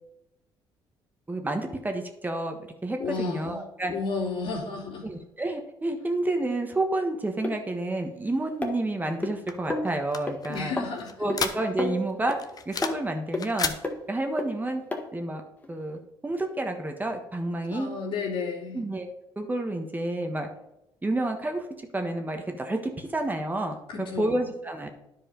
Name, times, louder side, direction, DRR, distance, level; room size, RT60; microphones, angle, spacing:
voice 1, 1.3-3.9 5.0-10.8 11.2-12.4 12.6-13.7 14.1-14.8 15.1-15.4 15.7-17.9 18.7-19.1 19.3-20.5 21.0-21.7 21.9-24.9, right 2 dB, 20° right, 4 dB, 1.4 m, -30 dB
voice 2, 3.0-5.1 10.5-11.3 17.7-18.8 23.9-24.5, left 4 dB, 70° left, -3 dB, 2.8 m, -33 dB
sound 1, 7.4-7.5 8.6-9.3 9.7-9.9 10.3-10.4 10.8-10.9 11.3-11.4 11.8-12.4 12.8-12.9 13.3-13.4 13.8-14.0 14.4-14.5 14.9-15.0 15.6-15.7, left 2 dB, 15° left, 1.6 m, -30 dB
sound 2, 9.5-12.0 12.3-13.1 13.3-13.8, left 6 dB, 40° left, 0.9 m, -32 dB
10.0 x 4.9 x 5.3 m, 0.87 s
supercardioid pair, 75°, 9 cm